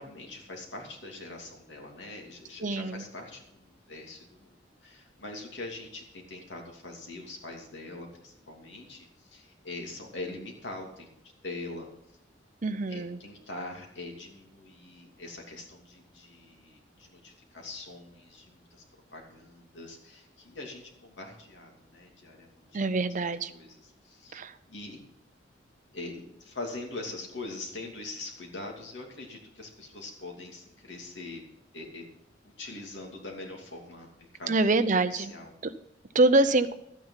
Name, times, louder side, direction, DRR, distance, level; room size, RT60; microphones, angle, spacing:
voice 1, 0.0-11.1 11.4-11.9 12.9-18.8 19.1-22.8 23.5-24.3 24.7-25.0 25.9-31.4 31.7-32.1 32.4-34.7 35.0-35.5, left 2 dB, 75° left, 1 dB, 2.7 m, -43 dB
voice 2, 2.6-3.0 12.6-13.2 22.7-23.5 24.3-24.5 34.5-35.3 36.1-36.7, right 2 dB, 45° right, 11 dB, 0.7 m, -25 dB
12.0 x 9.3 x 5.7 m, 0.77 s
head